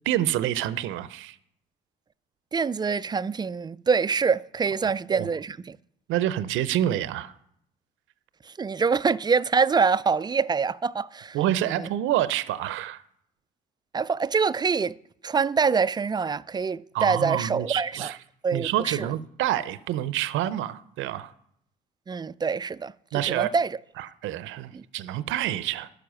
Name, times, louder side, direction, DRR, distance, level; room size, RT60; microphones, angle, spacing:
voice 1, 0.0-1.4 4.8-5.3 6.1-7.3 11.3-13.0 16.9-18.2 18.5-21.3 23.1-23.5 24.0-25.9, right 12 dB, 70° right, 0.6 m, -27 dB
voice 2, 2.5-5.8 8.5-11.4 11.8-11.9 13.9-15.0 15.2-18.1 18.4-19.1 22.1-23.8 24.7-24.8, right 5 dB, 20° right, 0.3 m, -25 dB
12.5 x 4.9 x 6.2 m
supercardioid pair, 65°, 21 cm